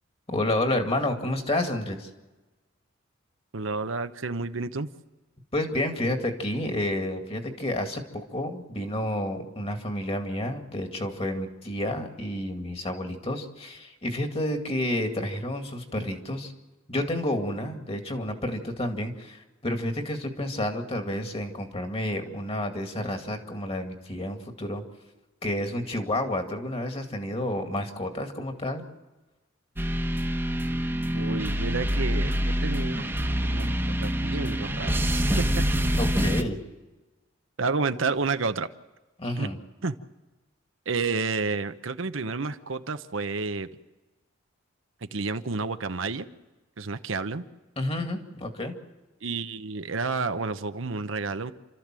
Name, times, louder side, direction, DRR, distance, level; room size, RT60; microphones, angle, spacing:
voice 1, 0.3-2.1 5.5-16.5 16.9-24.8 25.4-28.9 35.9-36.6 39.2-39.6 47.8-48.7, left 1 dB, 30° left, 5 dB, 2.2 m, -30 dB
voice 2, 3.5-4.9 31.1-35.7 37.6-38.7 39.4-39.5 39.8-39.9 40.9-43.7 45.0-46.3 46.8-47.5 49.2-51.5, right 4 dB, 70° right, 10 dB, 0.9 m, -30 dB
sound 1, 29.8-36.4, equal, 10° right, 1.2 m, -26 dB
29.0 x 13.5 x 7.6 m, 1.1 s
head